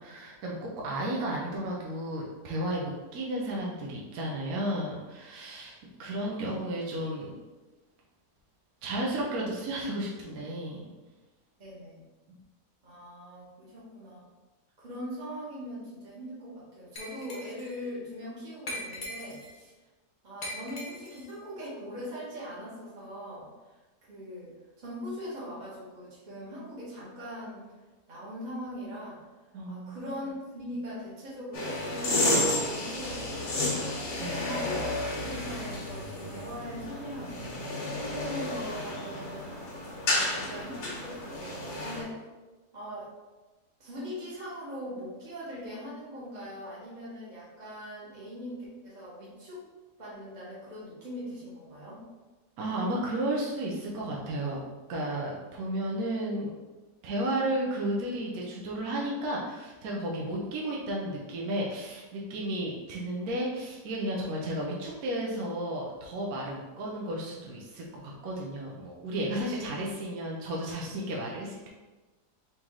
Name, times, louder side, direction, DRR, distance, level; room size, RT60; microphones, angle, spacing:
voice 1, 0.0-5.7 6.0-7.3 8.8-10.9 12.3-12.4 29.5-30.0 34.2-34.6 52.6-54.6 54.9-56.5 57.0-71.7, right 1 dB, 65° right, -3 dB, 1.1 m, -33 dB
voice 2, 11.6-12.0 12.8-14.3 14.8-19.7 20.2-27.6 28.1-29.2 29.7-34.9 35.3-37.5 37.9-39.5 40.0-42.2 42.7-43.1 43.8-49.7 50.0-52.0, equal, 30° right, -8 dB, 1.3 m, -41 dB
Glass, 17.0-17.7 18.7-19.6 20.4-21.3, left 1 dB, 45° left, 0.7 m, -40 dB
sound 1, 31.5-42.0, left 1 dB, 85° left, 1.6 m, -31 dB
4.1 x 3.0 x 3.7 m, 1.2 s
omnidirectional pair, 1.8 m